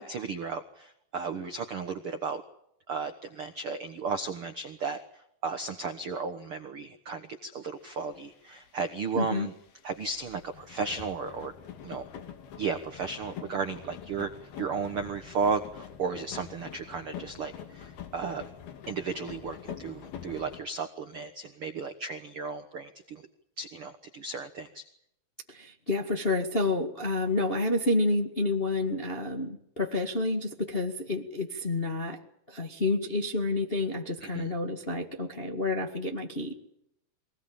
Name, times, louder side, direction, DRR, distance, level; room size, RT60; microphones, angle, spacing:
voice 1, 0.0-2.4 2.9-5.0 5.4-9.5 9.8-11.5 11.8-12.0 12.6-14.3 14.6-18.4 18.9-23.2 23.6-24.8 34.2-34.5, right 5 dB, 65° right, 8 dB, 1.3 m, -34 dB
sound 1, 8.1-8.2 8.4-8.7 9.1-20.6, left 8 dB, 70° left, 4.1 m, -45 dB
voice 2, 9.1-9.5 25.5-32.2 32.5-36.5, left 2 dB, 25° left, 3 dB, 1.1 m, -29 dB
23.5 x 19.5 x 8.9 m, 0.77 s
omnidirectional pair, 4.6 m